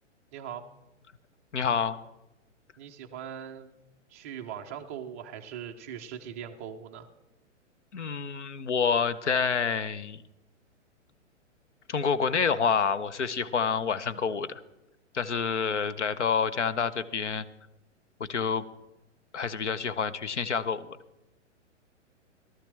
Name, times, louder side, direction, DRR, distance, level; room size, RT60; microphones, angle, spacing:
voice 1, 0.3-0.6 2.8-3.7 4.1-7.1, right 9 dB, 15° right, 3 dB, 0.3 m, -40 dB
voice 2, 1.5-2.0 7.9-10.2 11.9-14.6 15.1-17.5 18.3-18.6 19.3-20.9, left 6 dB, 70° left, 14 dB, 0.7 m, -28 dB
17.5 x 12.5 x 3.3 m, 0.98 s
figure-of-eight pair, 110°, 37 cm